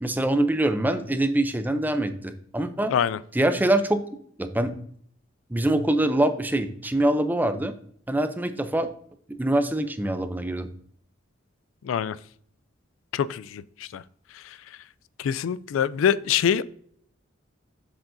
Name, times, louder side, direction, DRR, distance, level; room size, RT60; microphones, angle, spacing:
voice 1, 0.0-2.9 3.3-4.0 4.4-4.7 5.5-7.7 8.1-8.9 9.3-10.7, right 1 dB, 10° right, 0.5 m, -24 dB
voice 2, 11.8-12.2 13.1-14.0 14.3-14.6 15.2-16.6, left 8 dB, 90° left, 0.3 m, -25 dB
7.5 x 7.2 x 2.6 m
head